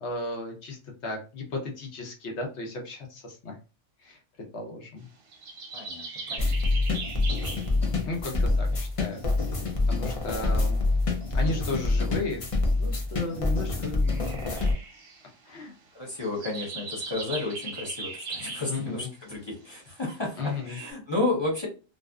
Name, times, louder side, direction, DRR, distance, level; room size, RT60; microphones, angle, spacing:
voice 1, 0.0-3.5 4.0-4.2 4.5-5.1 8.0-10.8 11.3-12.4 12.8-14.6 15.5-15.7 18.7-19.1 20.4-20.8, left 2 dB, 65° left, 1 dB, 1.1 m, -35 dB
sound 1, 5.3-7.8 9.3-9.4 9.7-10.6 12.6-12.7 14.0-15.5 16.1-18.9 19.8-20.0 20.4-20.9, right 3 dB, 55° right, 0.7 m, -39 dB
voice 2, 5.7-6.5 15.9-21.7, left 2 dB, 25° left, -4 dB, 0.7 m, -32 dB
sound 2, 6.4-14.7, left 3 dB, 50° left, 0.4 m, -26 dB
2.5 x 2.5 x 2.2 m, 0.34 s
omnidirectional pair, 1.3 m